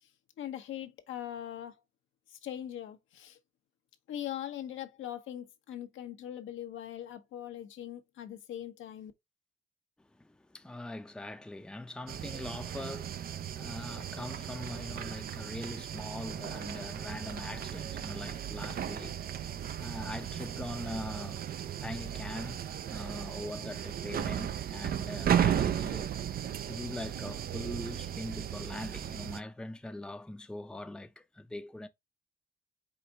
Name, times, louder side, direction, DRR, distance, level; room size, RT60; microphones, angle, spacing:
voice 1, 0.4-1.7 2.3-3.4 4.1-9.1, left 11 dB, 80° left, 0.9 m, -41 dB
voice 2, 10.1-26.1 26.7-31.9, left 1 dB, 5° left, 0.6 m, -42 dB
sound 1, 12.1-29.4, right 10 dB, 50° right, 0.5 m, -35 dB
4.9 x 2.5 x 4.0 m
cardioid pair, 90°, 20 cm